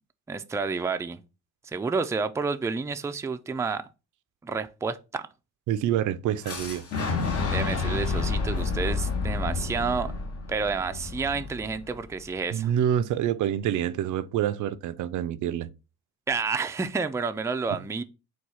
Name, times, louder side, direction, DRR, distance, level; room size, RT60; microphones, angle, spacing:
voice 1, 0.3-1.2 1.6-3.8 4.4-5.3 7.5-10.1 10.5-12.7 16.3-18.0, right 4 dB, 10° right, 0.4 m, -29 dB
voice 2, 5.7-6.8 12.5-15.7, right 10 dB, 75° right, 0.5 m, -27 dB
Fire / Explosion, 6.4-12.3, left 4 dB, 50° left, 1.1 m, -30 dB
4.3 x 2.3 x 4.6 m
cardioid pair, 90°, 30 cm